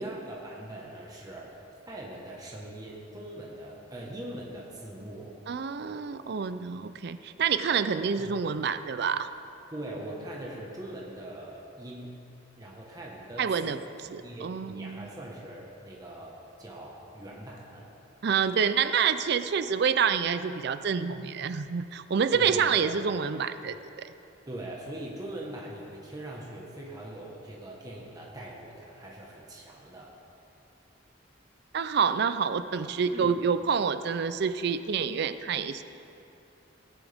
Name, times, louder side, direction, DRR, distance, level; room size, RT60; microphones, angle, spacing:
voice 1, 0.0-1.5 1.9-5.3 8.2-8.3 9.7-12.2 12.6-13.8 14.2-17.9 22.3-22.9 24.5-30.1 33.1-33.4, right 1 dB, 20° right, -3 dB, 1.3 m, -41 dB
voice 2, 5.5-9.3 13.4-13.8 14.1-15.1 18.2-23.7 31.7-35.8, right 6 dB, 60° right, 12 dB, 0.4 m, -27 dB
17.5 x 11.0 x 3.5 m, 2.8 s
head